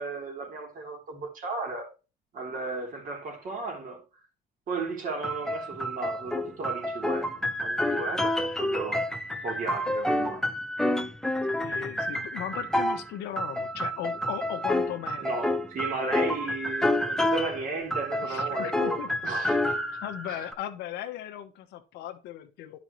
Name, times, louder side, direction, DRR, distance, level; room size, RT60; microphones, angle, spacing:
voice 1, 0.0-1.9 2.3-4.0 4.7-7.3 7.6-9.0 9.4-10.4 15.2-19.8 20.3-20.4, right 3 dB, 50° right, 3.3 m, -35 dB
sound 1, 5.2-13.1 13.4-17.6 17.9-20.5, left 1 dB, 5° left, 0.7 m, -29 dB
voice 2, 11.6-15.3 18.2-19.1 20.0-22.8, left 11 dB, 80° left, 1.1 m, -37 dB
11.0 x 5.2 x 3.1 m
supercardioid pair, 90°, 17 cm